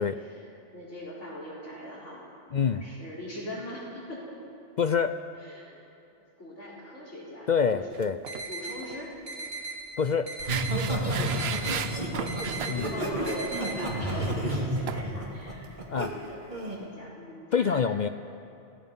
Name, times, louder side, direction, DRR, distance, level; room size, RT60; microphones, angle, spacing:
voice 1, 0.0-2.2 2.7-4.4 5.4-5.8 6.4-7.9 8.5-9.1 12.7-17.8, left 1 dB, 90° left, -6 dB, 4.8 m, -41 dB
voice 2, 2.5-2.8 4.8-5.2 7.5-8.2 10.0-10.3 12.7-12.9 15.0-15.1 15.9-16.1 17.5-18.1, left 6 dB, 50° left, 9 dB, 0.6 m, -26 dB
sound 1, 7.9-8.5 8.8-9.0 10.5-12.8 14.9-15.0, right 8 dB, 65° right, 0.9 m, -35 dB
sound 2, 8.3-8.7 9.3-9.7 10.3-10.7 11.3-11.7 12.3-12.7 13.3-13.7, right 3 dB, 85° right, 5.2 m, -37 dB
Laughter, 10.4-16.1 16.5-16.8, right 1 dB, 40° right, 3.1 m, -30 dB
27.5 x 17.5 x 5.4 m, 2.6 s
omnidirectional pair, 1.2 m